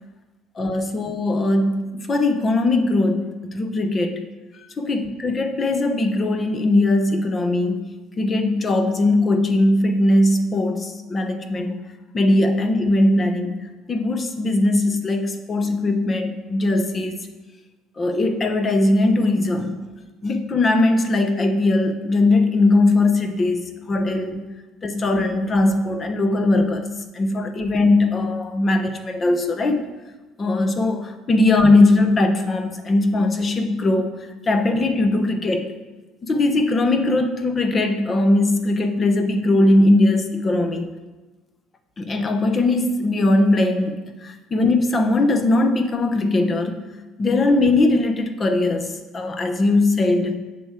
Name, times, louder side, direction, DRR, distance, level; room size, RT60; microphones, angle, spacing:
voice 1, 0.6-4.3 4.8-11.8 12.1-17.3 18.0-19.8 20.2-24.5 24.8-29.8 30.4-34.1 34.5-35.7 36.2-40.9 42.0-46.8 47.2-50.4, left 2 dB, 25° left, 7 dB, 1.0 m, -20 dB
8.2 x 6.1 x 8.1 m, 1.2 s
cardioid pair, 140°, 0 cm